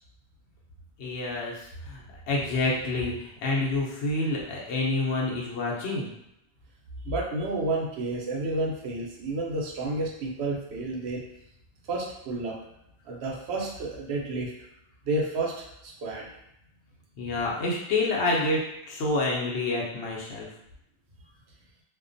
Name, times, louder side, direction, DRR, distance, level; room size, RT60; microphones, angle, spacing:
voice 1, 1.0-6.1 17.2-18.6 18.9-20.5, left 2 dB, 85° left, -3 dB, 0.9 m, -28 dB
voice 2, 7.0-11.2 11.9-12.6 13.0-14.5 15.0-16.3, right 2 dB, 80° right, -2 dB, 0.9 m, -30 dB
2.4 x 2.2 x 2.5 m, 0.81 s
omnidirectional pair, 1.1 m